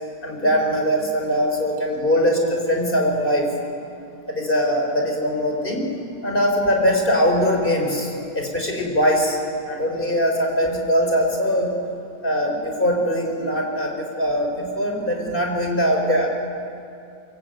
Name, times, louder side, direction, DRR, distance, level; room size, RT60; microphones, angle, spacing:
voice 1, 0.2-3.5 4.3-5.8 6.2-9.4 9.7-11.8 12.2-16.3, equal, 30° left, 1 dB, 4.8 m, -21 dB
24.0 x 22.0 x 9.2 m, 2.6 s
omnidirectional pair, 1.7 m